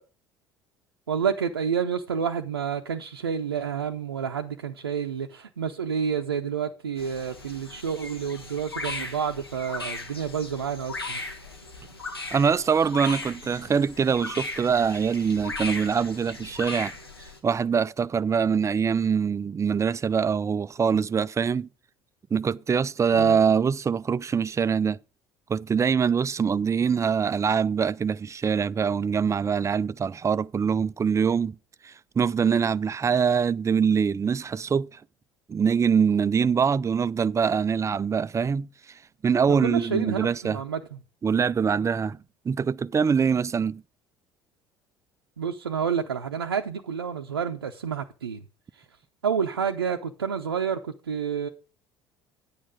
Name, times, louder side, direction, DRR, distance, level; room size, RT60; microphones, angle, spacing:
voice 1, 1.1-11.2 23.2-23.4 39.6-40.8 45.4-48.4 49.2-51.5, right 7 dB, 85° right, 0.7 m, -29 dB
sound 1, 7.0-17.4, left 3 dB, 90° left, 1.7 m, -37 dB
voice 2, 12.3-16.9 17.4-21.7 22.3-25.0 25.5-31.5 31.8-34.9 35.5-38.7 39.2-40.6 41.2-42.2 42.5-43.8, right 6 dB, 25° right, 0.5 m, -24 dB
10.0 x 8.5 x 3.7 m
figure-of-eight pair, 60°, 12 cm